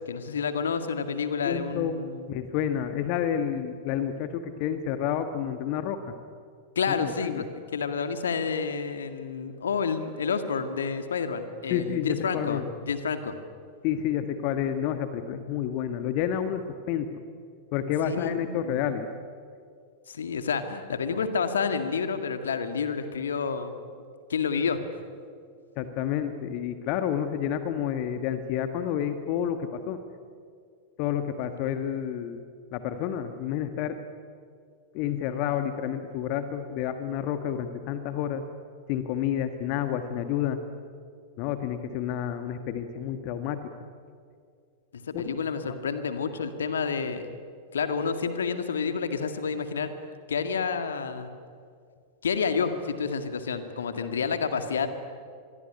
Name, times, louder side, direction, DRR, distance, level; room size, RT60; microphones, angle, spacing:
voice 1, 0.1-2.3 6.8-7.5 7.7-13.4 18.0-18.8 20.1-23.8 24.3-24.8 44.9-47.4 47.7-49.9 50.3-51.3 52.2-54.9, left 5 dB, 65° left, 9 dB, 2.0 m, -29 dB
voice 2, 1.4-2.0 2.3-6.1 7.0-7.4 11.7-12.6 13.8-17.1 17.7-19.1 25.8-30.0 31.0-32.4 32.7-34.0 34.9-38.4 38.9-40.6 41.4-43.7 45.1-45.2 45.6-45.7 54.0-54.2, left 9 dB, 45° left, 9 dB, 1.5 m, -29 dB
26.0 x 22.0 x 10.0 m, 2.2 s
figure-of-eight pair, 90°, 0 cm